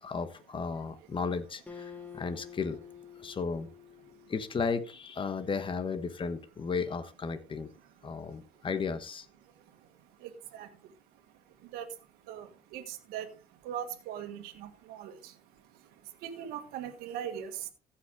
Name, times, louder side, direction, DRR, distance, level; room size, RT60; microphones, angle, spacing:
voice 1, 0.0-2.8 3.2-3.7 4.3-7.7 8.0-9.3, left 5 dB, 35° left, 10 dB, 1.3 m, -34 dB
Acoustic guitar, 1.7-5.1, left 7 dB, 10° left, 2.0 m, -49 dB
voice 2, 7.8-8.6 9.4-17.7, right 9 dB, 85° right, 6 dB, 1.7 m, -43 dB
15.5 x 5.8 x 3.7 m, 0.33 s
supercardioid pair, 80°, 15 cm